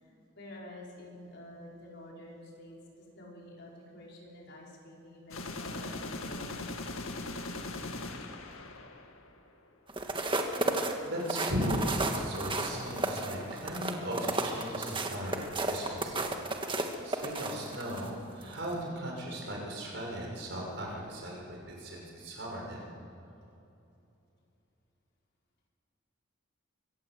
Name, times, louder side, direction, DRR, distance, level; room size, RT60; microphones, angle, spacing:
voice 1, 0.0-6.5, left 1 dB, 55° left, -3 dB, 5.4 m, -49 dB
sound 1, 5.3-9.4, left 2 dB, 85° left, 2.0 m, -40 dB
sound 2, 9.9-18.1 18.5-18.7, right 2 dB, 25° right, 1.6 m, -33 dB
voice 2, 11.0-16.4 17.0-22.9, equal, 60° right, -1 dB, 6.2 m, -37 dB
24.5 x 17.5 x 8.0 m, 2.8 s
head